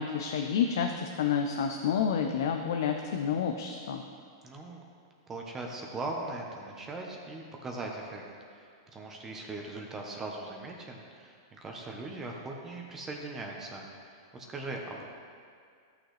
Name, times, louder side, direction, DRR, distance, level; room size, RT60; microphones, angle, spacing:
voice 1, 0.0-4.0, left 7 dB, 75° left, 4 dB, 0.5 m, -29 dB
voice 2, 4.4-4.8 5.3-8.2 8.5-15.0, right 2 dB, 20° right, 0 dB, 1.0 m, -40 dB
13.5 x 6.4 x 3.3 m, 2.2 s
hypercardioid pair, 130°, 2 cm